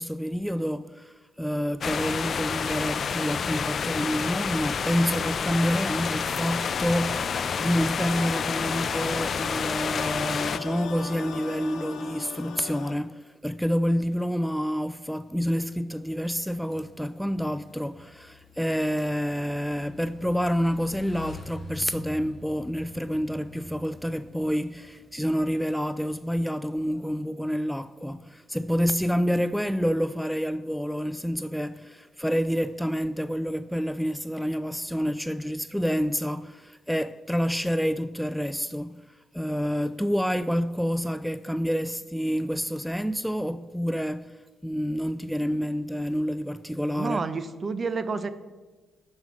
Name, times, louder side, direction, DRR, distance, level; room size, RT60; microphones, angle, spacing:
voice 1, 0.0-47.2, equal, ahead, 0.4 m, -28 dB
sound 1, 1.8-10.6, left 6 dB, 55° left, 0.5 m, -29 dB
sound 2, 5.1-12.9, left 7 dB, 75° left, 1.1 m, -39 dB
Motorcycle / Engine, 16.0-25.7, left 2 dB, 35° left, 4.4 m, -47 dB
voice 2, 47.0-48.3, right 4 dB, 45° right, 0.9 m, -29 dB
12.5 x 5.6 x 7.4 m
supercardioid pair, 55°, 0 cm